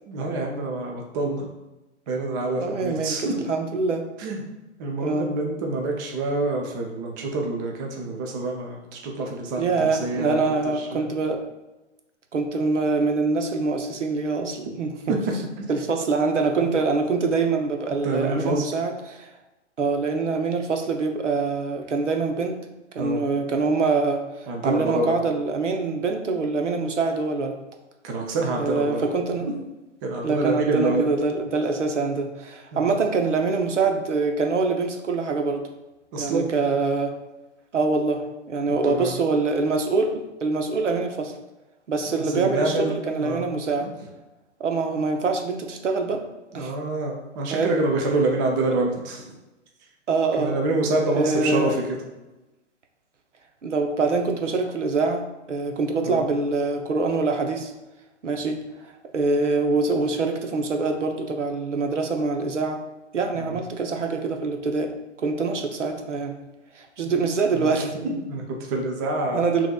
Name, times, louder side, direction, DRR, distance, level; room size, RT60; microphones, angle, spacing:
voice 1, 0.1-1.5 2.1-3.4 4.2-4.4 4.8-10.4 10.7-11.1 15.1-15.2 15.6-15.7 16.6-16.7 18.0-18.7 23.0-23.2 24.5-25.2 28.0-29.1 30.0-31.1 32.7-33.0 36.1-36.5 38.7-39.2 42.1-43.5 43.8-43.9 46.5-49.3 50.4-51.8 56.0-56.3 63.3-63.6 67.5-69.4, right 2 dB, 20° right, 1 dB, 0.4 m, -27 dB
voice 2, 2.6-4.0 5.0-5.3 9.6-11.4 12.3-15.2 15.7-19.3 19.8-22.6 22.9-27.6 28.6-29.5 30.2-35.7 36.2-37.2 37.7-41.3 41.9-43.9 44.6-46.2 46.5-46.7 47.5-47.8 48.7-48.8 50.1-50.6 50.9-51.8 53.6-57.7 58.2-62.8 63.1-64.9 65.2-66.4 66.7-67.9 69.3-69.7, right 4 dB, 90° right, 5 dB, 0.7 m, -24 dB
5.8 x 2.9 x 2.2 m, 1.0 s
hypercardioid pair, 125°, 36 cm